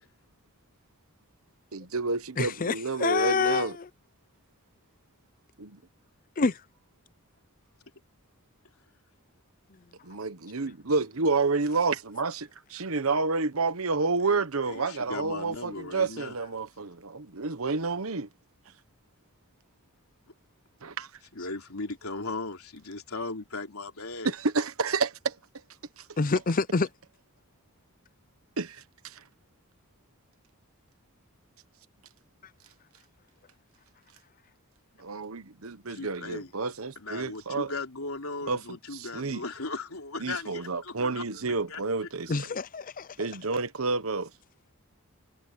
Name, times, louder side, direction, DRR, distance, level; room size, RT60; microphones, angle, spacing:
voice 1, 1.7-3.7 5.6-5.8 10.1-18.3 20.8-21.1 24.2-25.3 28.6-29.2 35.0-37.7 38.5-38.6 38.9-39.4 40.2-42.3 43.2-44.3, right 4 dB, 75° right, 1.2 m, -29 dB
voice 2, 2.4-3.9 6.4-6.6 26.2-26.9 42.3-43.2, left 4 dB, 40° left, 0.6 m, -27 dB
voice 3, 14.2-16.3 21.3-24.3 35.9-36.5 37.0-41.4 41.7-41.8, left 3 dB, 85° left, 3.4 m, -37 dB
head